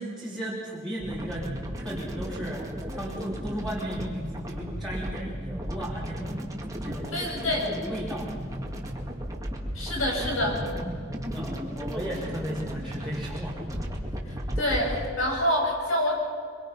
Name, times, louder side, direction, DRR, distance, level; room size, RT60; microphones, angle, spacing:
voice 1, 0.0-1.5 1.8-2.7 2.9-6.4 6.8-8.3 11.3-13.8, equal, ahead, -5 dB, 3.0 m, -35 dB
sound 1, 1.0-15.1, equal, 15° right, 2.3 m, -35 dB
voice 2, 7.1-7.7 9.7-10.6 14.6-16.1, left 1 dB, 75° left, -1 dB, 7.2 m, -26 dB
24.5 x 23.5 x 5.7 m, 2.3 s
head